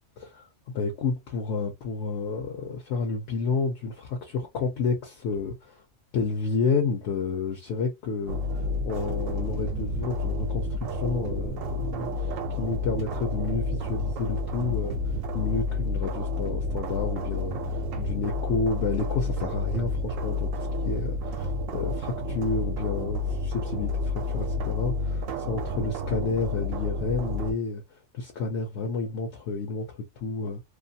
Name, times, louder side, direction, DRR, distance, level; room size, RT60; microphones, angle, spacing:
voice 1, 0.7-5.8 6.1-15.0 15.3-27.8 28.1-30.6, left 4 dB, 65° left, 0.9 m, -30 dB
sound 1, 8.3-27.5, left 2 dB, 90° right, 1.0 m, -30 dB
2.5 x 2.4 x 2.6 m
omnidirectional pair, 1.3 m